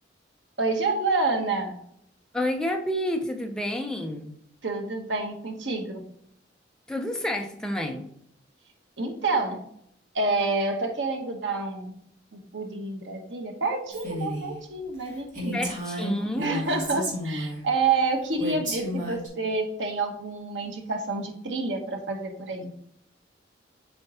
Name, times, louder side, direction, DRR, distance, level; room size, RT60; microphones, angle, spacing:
voice 1, 0.6-1.8 4.6-6.0 9.0-9.6 10.1-12.0 12.3-15.7 16.4-22.7, right 3 dB, 80° right, 3 dB, 1.2 m, -28 dB
voice 2, 2.3-4.4 6.9-8.1 15.5-16.6, left 1 dB, 5° left, 3 dB, 0.7 m, -29 dB
Female speech woman speaking, 13.9-14.5 14.9-15.0 15.3-17.6 18.4-19.3, equal, 45° right, 2.5 m, -32 dB
7.9 x 4.4 x 3.0 m, 0.71 s
head